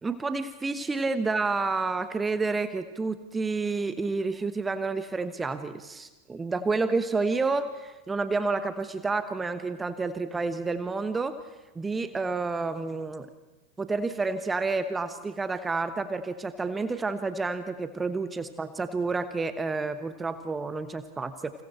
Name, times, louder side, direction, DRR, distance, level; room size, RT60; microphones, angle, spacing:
voice 1, 0.0-11.3 11.7-13.3 13.8-21.5, right 3 dB, 15° right, 11 dB, 1.2 m, -29 dB
30.0 x 28.5 x 4.5 m, 1.1 s
figure-of-eight pair, 90°, 0 cm